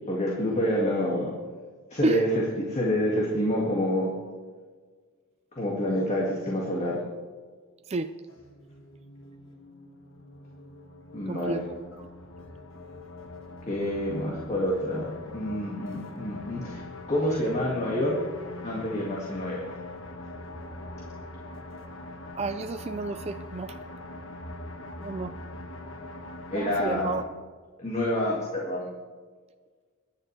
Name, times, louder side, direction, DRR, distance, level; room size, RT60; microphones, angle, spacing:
voice 1, 0.1-1.3 1.9-2.3 2.6-4.1 5.6-7.0 11.1-11.6 13.7-16.8 17.1-18.2 18.6-19.7 26.5-27.2 27.8-28.9, left 1 dB, 35° left, -3 dB, 2.2 m, -27 dB
sound 1, 8.3-27.2, left 2 dB, 65° left, 1.4 m, -42 dB
voice 2, 11.3-11.6 12.0-12.1 22.4-23.8 25.0-25.4 26.5-27.3, right 3 dB, 30° right, 8 dB, 0.4 m, -31 dB
23.5 x 10.5 x 3.3 m, 1.5 s
head